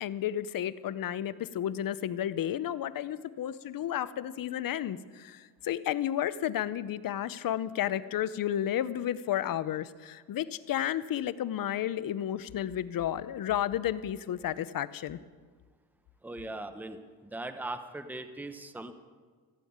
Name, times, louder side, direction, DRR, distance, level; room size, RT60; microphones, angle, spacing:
voice 1, 0.0-15.2, left 11 dB, 55° left, 15 dB, 0.7 m, -32 dB
voice 2, 16.2-17.0 17.3-18.9, right 2 dB, 5° right, 9 dB, 0.9 m, -39 dB
15.5 x 9.1 x 8.7 m, 1.5 s
cardioid pair, 110°, 41 cm